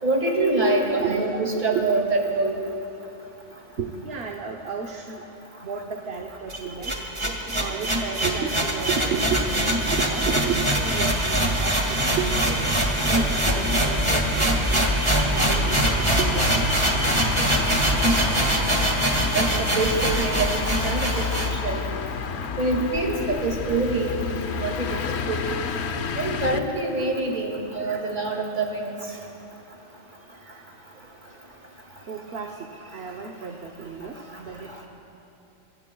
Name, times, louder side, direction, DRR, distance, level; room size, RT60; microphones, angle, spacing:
voice 1, 0.0-2.6 19.3-21.8 22.6-24.2 24.6-25.0 25.3-25.5 26.2-28.9, right 2 dB, 40° right, 0 dB, 2.3 m, -25 dB
voice 2, 3.8-5.2 5.6-7.0 7.2-12.5 13.0-14.9 15.2-16.8 32.1-34.9, right 6 dB, 60° right, 1 dB, 1.1 m, -33 dB
sound 1, 6.5-21.5, right 1 dB, 25° right, 1.8 m, -23 dB
sound 2, 9.4-26.6, left 5 dB, 65° left, 1.0 m, -32 dB
25.5 x 24.0 x 2.3 m, 2.8 s
omnidirectional pair, 1.2 m